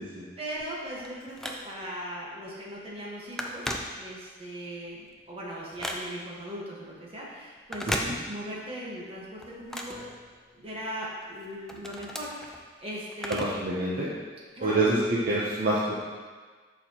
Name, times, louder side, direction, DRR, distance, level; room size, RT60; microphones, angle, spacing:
voice 1, 0.4-8.0 8.3-10.1 10.5-13.4 14.5-14.9, equal, 30° right, -5 dB, 1.5 m, -39 dB
Telephone, 0.6-2.0 2.5-2.7 3.0-4.5 4.9-6.4 7.6-8.7 9.0-10.8 11.2-13.7 14.0-14.1 15.0-15.1, equal, 5° left, 0.4 m, -37 dB
voice 2, 13.3-14.1 14.6-15.9, right 2 dB, 50° right, -6 dB, 0.7 m, -26 dB
6.9 x 5.9 x 3.0 m, 1.5 s
head